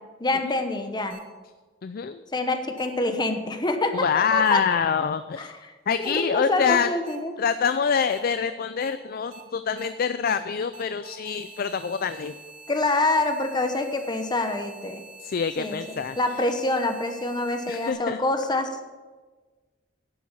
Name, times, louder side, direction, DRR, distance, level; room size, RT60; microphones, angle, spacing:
voice 1, 0.2-1.2 2.3-4.6 5.4-5.7 6.0-7.3 12.7-15.0 15.6-18.7, left 2 dB, 25° left, 7 dB, 1.0 m, -26 dB
sound 1, 1.1-1.2 2.8-2.9 4.4-4.5 6.0-6.1 7.1-7.2 8.1-8.2 8.8-8.9 9.3-9.4 9.8-9.9 10.3-10.4 10.7-17.9, right 3 dB, 45° right, 2.4 m, -46 dB
voice 2, 1.8-2.2 3.9-5.5 5.9-6.9 7.4-12.3 15.2-16.2 17.7-18.2, left 6 dB, 50° left, 11 dB, 0.4 m, -25 dB
10.5 x 7.6 x 7.0 m, 1.3 s
head